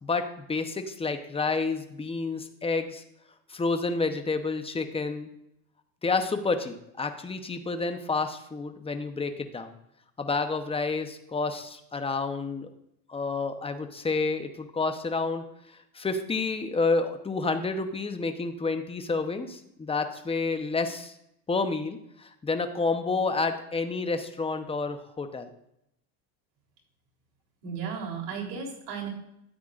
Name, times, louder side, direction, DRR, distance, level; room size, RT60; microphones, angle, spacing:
voice 1, 0.0-3.0 3.5-5.3 6.0-9.7 10.2-12.7 13.1-15.4 15.9-21.1 21.5-25.5, left 3 dB, 15° left, 7 dB, 0.8 m, -29 dB
voice 2, 27.6-29.1, right 6 dB, 70° right, -1 dB, 3.6 m, -34 dB
12.5 x 9.3 x 2.5 m, 0.78 s
cardioid pair, 120°, 43 cm